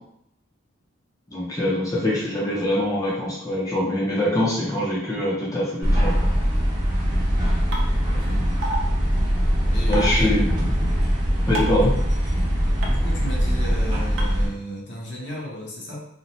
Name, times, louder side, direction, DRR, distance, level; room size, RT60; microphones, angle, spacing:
voice 1, 1.3-6.1 9.9-10.6 11.5-11.9, left 1 dB, 15° left, -6 dB, 0.5 m, -23 dB
voice 2, 1.9-2.2 8.1-8.5 9.7-10.5 11.8-11.9 12.8-16.0, equal, 65° left, -3 dB, 0.8 m, -34 dB
sound 1, 5.8-14.5, equal, 25° right, 0.7 m, -22 dB
sound 2, 7.7-7.8 8.6-8.8 9.9-10.1 11.5-11.8 12.8-12.9 14.2-14.3, right 1 dB, 75° right, 0.5 m, -27 dB
2.7 x 2.0 x 3.0 m, 0.76 s
head